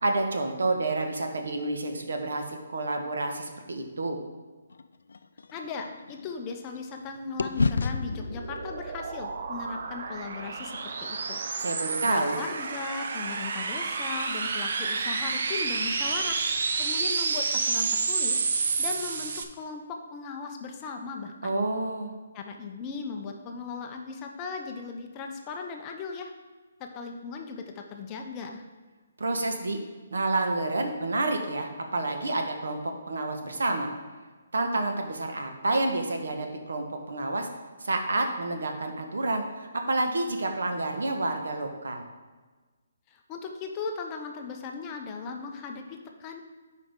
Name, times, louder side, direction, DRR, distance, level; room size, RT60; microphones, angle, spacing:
voice 1, 0.0-4.2 11.6-12.4 21.4-22.1 29.2-29.8 30.1-33.9 34.5-37.5 37.8-42.0, right 2 dB, 85° right, 4 dB, 1.2 m, -29 dB
sound 1, 4.7-7.0 7.4-11.6, left 4 dB, 90° left, 0.4 m, -33 dB
voice 2, 5.5-11.4 12.0-16.4 16.8-18.5 18.8-21.5 22.3-26.3 26.8-28.6 43.1-46.4, left 4 dB, 15° left, 3 dB, 0.4 m, -37 dB
sound 2, 7.9-19.4, right 4 dB, 40° right, 0.5 m, -30 dB
11.0 x 4.9 x 3.6 m, 1.3 s
hypercardioid pair, 180°, 0 cm